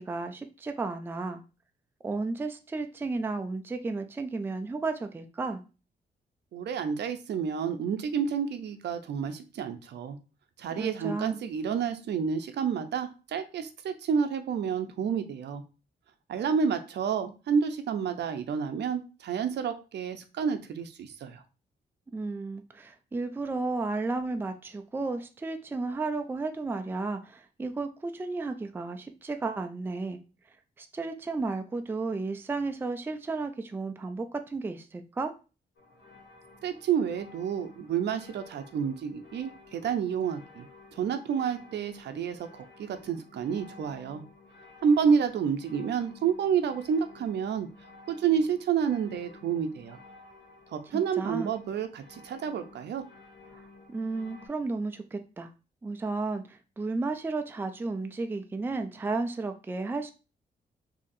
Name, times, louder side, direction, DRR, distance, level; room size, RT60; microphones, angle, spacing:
voice 1, 0.0-1.4 2.0-5.6 10.8-11.4 22.1-30.2 30.8-35.3 50.9-51.5 53.9-55.5 55.8-60.1, right 3 dB, 10° right, 7 dB, 0.3 m, -33 dB
voice 2, 6.5-10.2 10.6-15.6 16.3-21.4 36.6-40.7 40.9-44.2 44.8-47.7 48.1-50.0 50.7-53.0, right 7 dB, 80° right, 8 dB, 0.5 m, -29 dB
sound 1, 35.8-54.5, left 3 dB, 85° left, 1.0 m, -53 dB
4.0 x 2.8 x 2.5 m, 0.32 s
cardioid pair, 105°, 18 cm